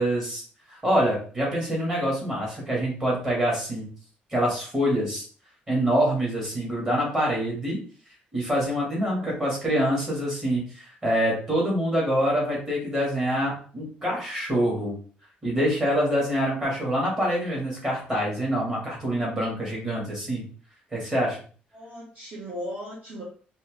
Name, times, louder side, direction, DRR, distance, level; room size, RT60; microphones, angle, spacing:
voice 1, 0.0-3.9 4.3-5.3 5.7-7.8 8.3-14.9 15.4-20.4 20.9-21.4, equal, 20° right, -3 dB, 2.4 m, -25 dB
voice 2, 21.7-23.2, equal, 40° right, -6 dB, 1.6 m, -37 dB
4.2 x 3.1 x 3.7 m, 0.42 s
cardioid pair, 150°, 3 cm